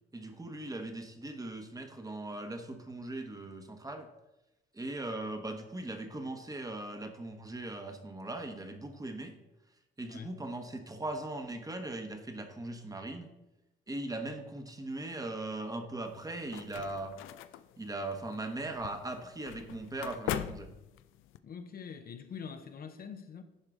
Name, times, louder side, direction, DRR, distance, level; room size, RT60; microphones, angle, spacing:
voice 1, 0.1-4.1 4.7-9.3 10.0-13.3 13.9-17.1 17.8-20.7, right 2 dB, 20° right, 1.0 m, -39 dB
sound 1, 16.1-21.4, left 11 dB, 90° left, 0.4 m, -42 dB
voice 2, 21.4-23.4, left 6 dB, 50° left, 0.7 m, -44 dB
11.0 x 4.8 x 3.7 m
cardioid pair, 90°, 20 cm